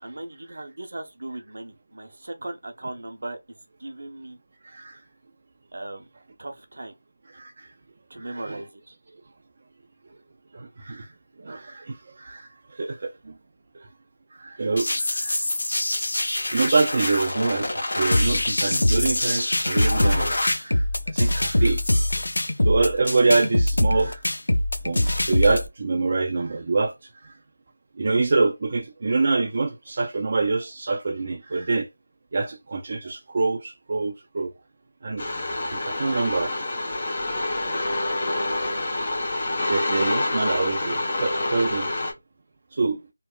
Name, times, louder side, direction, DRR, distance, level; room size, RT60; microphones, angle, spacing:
voice 1, 0.0-3.4 3.8-4.4 5.7-6.1 6.4-6.9 8.1-8.9, right 2 dB, 60° right, 0.7 m, -37 dB
voice 2, 4.6-5.0 7.3-7.7 8.2-8.6 10.5-11.1 11.4-13.3 14.3-15.4 16.5-21.8 22.6-24.2 24.8-26.9 27.2-27.3 28.0-31.9 32.3-34.5 35.0-35.2 35.7-36.5 39.7-41.9 42.7-43.0, right 3 dB, 35° right, 0.3 m, -25 dB
sound 1, 14.8-20.5, left 1 dB, 60° left, 1.1 m, -27 dB
sound 2, 18.1-25.7, left 1 dB, 75° left, 0.4 m, -23 dB
sound 3, 35.2-42.1, left 2 dB, 35° left, 0.8 m, -27 dB
2.9 x 2.0 x 2.3 m
figure-of-eight pair, 170°, 0 cm